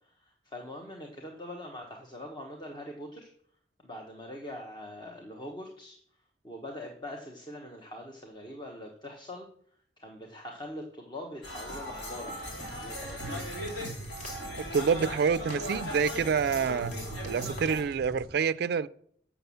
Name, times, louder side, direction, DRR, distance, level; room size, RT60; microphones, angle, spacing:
voice 1, 0.0-3.3 3.8-6.0 6.4-9.5 10.0-12.4 12.7-13.5, left 1 dB, 25° left, 1 dB, 1.1 m, -43 dB
sound 1, 11.4-17.8, equal, 85° left, 3.7 m, -38 dB
sound 2, 12.4-18.3, equal, 45° left, 2.8 m, -46 dB
voice 2, 14.6-16.9 17.2-18.9, right 6 dB, 60° right, 14 dB, 0.3 m, -27 dB
7.9 x 6.0 x 7.0 m, 0.62 s
head